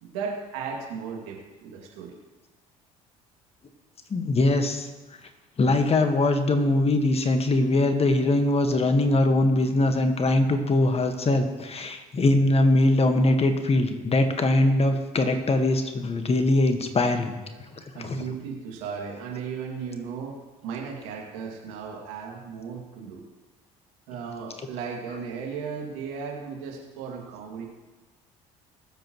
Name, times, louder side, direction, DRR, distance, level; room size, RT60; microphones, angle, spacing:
voice 1, 0.0-2.2 17.9-23.2 24.1-27.7, right 6 dB, 75° right, -1 dB, 2.4 m, -36 dB
voice 2, 4.1-4.9 5.6-17.3 17.8-18.2, left 2 dB, 35° left, 7 dB, 1.6 m, -22 dB
21.0 x 7.9 x 3.1 m, 1.2 s
hypercardioid pair, 60°, 17 cm